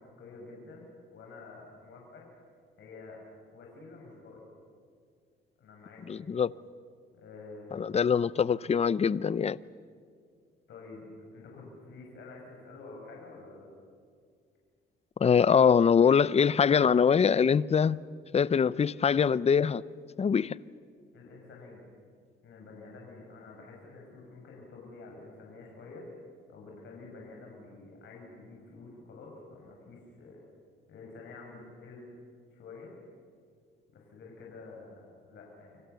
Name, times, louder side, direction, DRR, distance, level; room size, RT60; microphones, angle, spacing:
voice 1, 0.0-2.3 2.8-3.2 3.5-4.5 5.6-6.3 7.1-7.9 10.7-13.7 21.1-21.9 22.4-26.1 26.5-30.4 30.9-32.1 32.5-32.9 33.9-35.8, left 3 dB, 65° left, 6.7 m, -49 dB
voice 2, 6.1-6.5 7.7-9.6 15.2-18.0 18.3-19.8 20.2-20.6, left 6 dB, 30° left, 0.6 m, -23 dB
29.5 x 25.5 x 7.0 m
cardioid pair, 90°, 20 cm